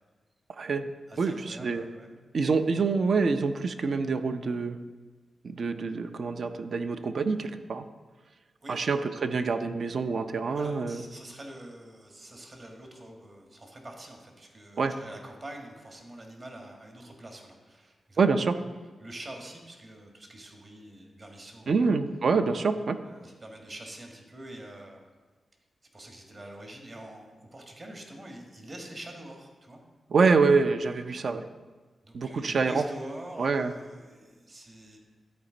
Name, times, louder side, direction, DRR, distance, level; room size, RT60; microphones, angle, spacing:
voice 1, 0.6-0.9 1.2-1.8 2.3-4.8 5.4-7.9 8.7-11.0 14.8-14.9 18.2-18.6 21.7-23.0 30.1-31.5 32.1-32.8 33.4-33.7, right 4 dB, 65° right, 9 dB, 0.5 m, -26 dB
voice 2, 1.1-2.1 8.6-8.8 10.5-18.2 19.0-21.8 23.0-25.0 25.9-29.8 32.0-35.0, right 1 dB, 45° right, 1 dB, 1.6 m, -45 dB
13.0 x 4.4 x 3.9 m, 1.3 s
cardioid pair, 50°, 0 cm